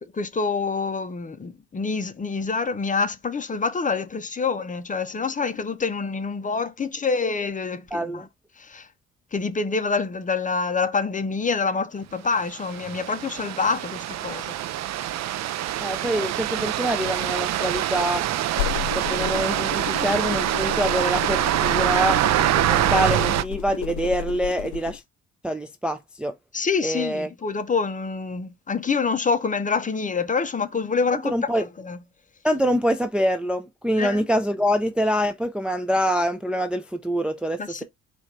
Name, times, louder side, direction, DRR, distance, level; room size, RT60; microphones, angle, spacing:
voice 1, 0.2-8.2 8.7-8.8 9.3-14.5 26.5-32.0 34.0-34.2 37.6-37.8, left 4 dB, 25° left, 0.7 m, -26 dB
voice 2, 7.9-8.2 15.8-18.2 19.0-22.2 22.7-25.0 25.4-26.4 26.8-27.3 31.1-31.7 32.4-37.8, equal, 5° right, 0.4 m, -25 dB
sound 1, 12.5-23.4, right 13 dB, 60° right, 0.5 m, -25 dB
sound 2, 18.5-25.0, left 16 dB, 80° left, 0.5 m, -33 dB
4.2 x 2.5 x 4.5 m
cardioid pair, 90°, 30 cm